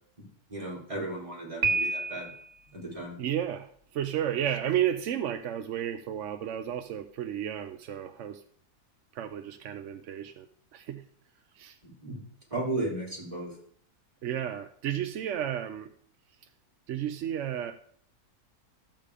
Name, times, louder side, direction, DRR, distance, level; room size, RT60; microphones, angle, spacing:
voice 1, 0.5-2.3 2.7-3.1 11.8-12.2 12.5-13.5, right 2 dB, 20° right, -5 dB, 4.3 m, -35 dB
Piano, 1.6-2.6, right 2 dB, 85° right, 2.1 m, -29 dB
voice 2, 3.2-8.4 9.1-10.5 10.7-11.0 11.6-11.8 14.2-15.9 16.9-17.7, right 10 dB, 60° right, 8 dB, 0.8 m, -32 dB
13.5 x 7.5 x 5.0 m, 0.62 s
omnidirectional pair, 1.7 m